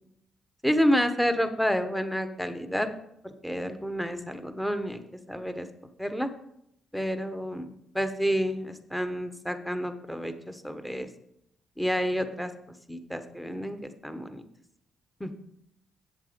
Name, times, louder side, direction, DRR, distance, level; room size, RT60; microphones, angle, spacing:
voice 1, 0.6-2.9 3.4-5.0 5.3-5.7 6.0-6.3 6.9-11.1 11.8-12.5 12.9-14.4 15.2-15.3, equal, 5° left, 8 dB, 1.1 m, -29 dB
8.1 x 7.4 x 5.1 m, 0.77 s
cardioid pair, 75°, 0 cm